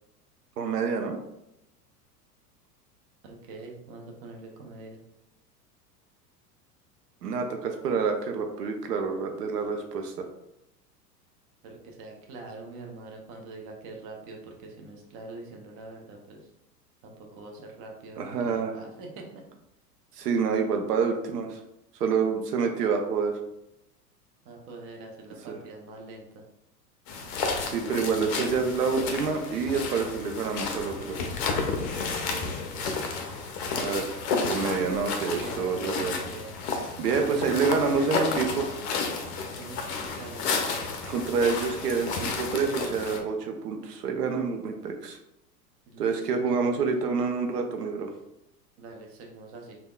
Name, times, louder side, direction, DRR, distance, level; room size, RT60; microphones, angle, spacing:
voice 1, 0.6-1.2 7.2-10.3 18.2-18.8 20.1-21.6 22.0-23.3 25.5-25.6 27.6-31.1 33.8-36.1 37.0-38.6 41.1-45.2 46.0-48.1, right 5 dB, 75° right, 4 dB, 0.6 m, -27 dB
voice 2, 3.2-5.0 9.6-9.7 11.6-16.5 17.0-19.4 24.4-26.4 32.1-32.5 35.3-36.5 37.1-38.5 39.6-40.8 45.9-47.1 48.8-49.8, right 3 dB, 30° right, 1 dB, 0.5 m, -44 dB
sound 1, 27.1-43.2, left 4 dB, 45° left, 0.6 m, -32 dB
3.3 x 2.2 x 2.2 m, 0.85 s
figure-of-eight pair, 85°, 49 cm